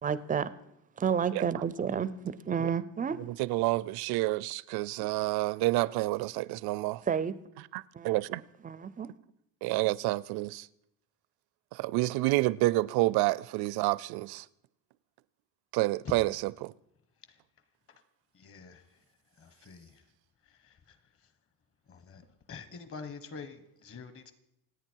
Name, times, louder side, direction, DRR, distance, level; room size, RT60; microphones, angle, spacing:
voice 1, 0.0-0.5 1.0-3.2 7.1-7.3 7.9-9.1, right 7 dB, 20° right, 0.5 m, -31 dB
voice 2, 3.2-7.0 7.7-8.4 9.6-10.7 11.7-14.4 15.7-16.7, right 19 dB, 70° right, 0.6 m, -29 dB
voice 3, 18.3-18.8 19.4-20.0 20.5-21.0 21.9-24.3, left 5 dB, 35° left, 1.3 m, -45 dB
27.5 x 9.3 x 4.6 m
cardioid pair, 155°, 39 cm